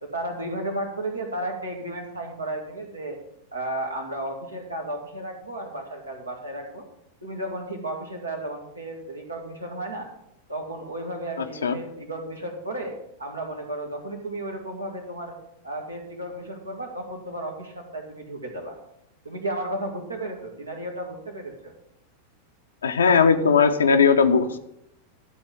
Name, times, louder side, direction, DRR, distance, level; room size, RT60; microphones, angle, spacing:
voice 1, 0.0-3.2 3.5-6.8 7.2-10.1 10.5-15.4 15.6-18.8 19.2-21.7, right 1 dB, 80° right, 1 dB, 2.0 m, -33 dB
voice 2, 22.8-24.6, left 5 dB, 70° left, 7 dB, 0.7 m, -18 dB
12.0 x 4.3 x 7.7 m, 0.82 s
figure-of-eight pair, 90°, 0 cm